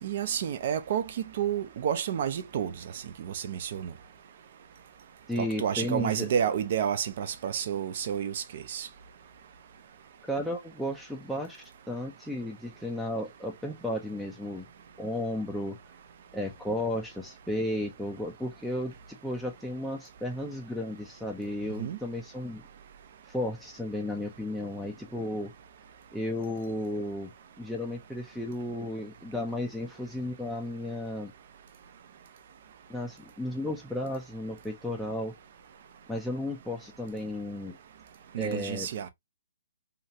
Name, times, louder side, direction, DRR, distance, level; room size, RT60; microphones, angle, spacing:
voice 1, 0.0-1.1 1.4-2.7 3.2-3.9 5.4-8.9 21.8-22.0 38.3-39.1, right 8 dB, 50° right, 0.5 m, -30 dB
voice 2, 5.3-6.3 10.3-14.6 15.0-15.8 16.3-22.6 23.3-25.5 26.1-27.3 27.6-31.3 32.9-35.3 36.1-37.8 38.4-38.9, left 1 dB, ahead, 0.4 m, -34 dB
2.9 x 2.4 x 2.7 m
hypercardioid pair, 140°, 0 cm